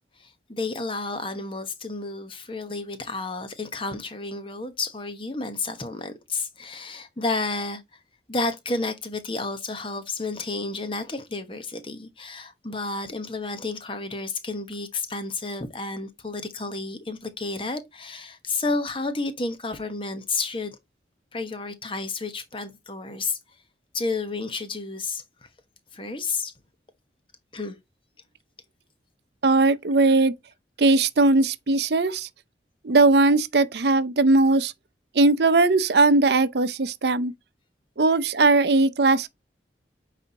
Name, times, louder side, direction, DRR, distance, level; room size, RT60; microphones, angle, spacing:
voice 1, 0.2-7.8 8.3-20.8 21.3-23.4 23.9-25.2 25.9-26.5 27.5-27.8, left 3 dB, 30° left, 1.1 m, -31 dB
voice 2, 29.4-30.3 30.8-32.3 32.8-34.7 35.1-37.3 38.0-39.3, right 3 dB, 70° right, 0.6 m, -19 dB
8.8 x 4.2 x 2.8 m
head